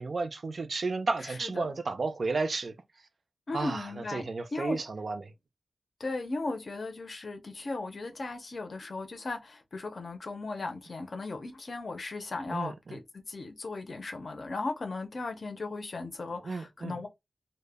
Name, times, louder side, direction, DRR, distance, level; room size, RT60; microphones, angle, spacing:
voice 1, 0.0-2.8 3.5-5.3 12.5-13.0 16.4-17.0, right 3 dB, 60° right, 0.3 m, -33 dB
voice 2, 1.2-1.7 3.5-4.8 6.0-17.1, left 3 dB, 60° left, 0.5 m, -37 dB
2.1 x 2.0 x 3.3 m
wide cardioid pair, 110°, 0 cm